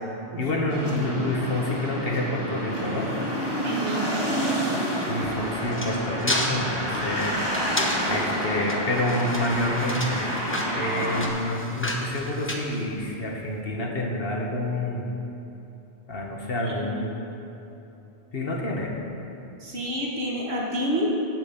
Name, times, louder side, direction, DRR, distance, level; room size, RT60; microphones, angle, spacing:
voice 1, 0.4-3.1 5.1-7.5 8.1-15.1 16.1-17.1 18.3-18.9, left 1 dB, 65° left, 0 dB, 1.5 m, -28 dB
sound 1, 0.7-11.3, equal, 25° right, 1.7 m, -29 dB
voice 2, 3.6-4.1 16.6-16.9 19.6-21.1, equal, 80° right, -3 dB, 1.8 m, -29 dB
sound 2, 5.2-13.4, left 1 dB, 15° left, 0.9 m, -32 dB
8.9 x 8.5 x 7.1 m, 3.0 s
omnidirectional pair, 1.0 m